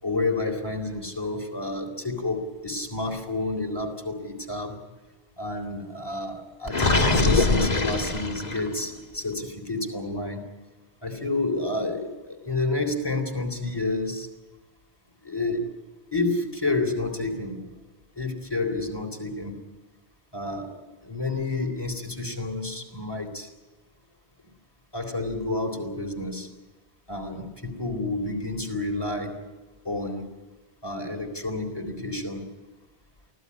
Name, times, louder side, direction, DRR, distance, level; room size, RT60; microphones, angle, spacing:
voice 1, 0.0-4.8 5.4-10.5 11.0-14.3 15.2-15.7 16.1-17.7 18.2-19.6 20.3-23.5 24.9-26.5 27.1-29.4 29.8-30.3 30.8-32.5, left 2 dB, 20° left, 2 dB, 3.9 m, -30 dB
Gurgling, 6.7-8.8, left 3 dB, 35° left, 2.0 m, -22 dB
24.0 x 16.5 x 9.8 m, 1.2 s
omnidirectional pair, 1.2 m